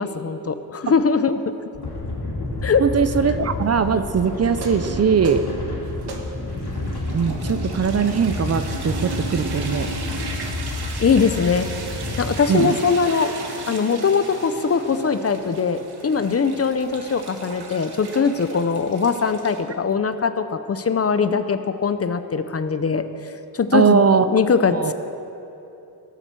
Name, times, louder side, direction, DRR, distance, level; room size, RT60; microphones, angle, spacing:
voice 1, 0.0-1.4 2.6-2.8 11.0-11.7 12.2-13.3 13.7-23.0 23.5-24.0 24.3-24.9, left 5 dB, 40° left, 10 dB, 0.5 m, -21 dB
sound 1, 1.7-12.3, left 2 dB, 90° left, 2.9 m, -30 dB
voice 2, 2.8-5.5 7.1-9.9 12.5-12.8 23.7-24.2 24.7-24.9, right 6 dB, 40° right, 11 dB, 0.5 m, -20 dB
sound 2, 4.5-19.6, right 3 dB, 80° right, 1.6 m, -35 dB
17.0 x 7.4 x 6.8 m, 2.9 s
wide cardioid pair, 145°, 38 cm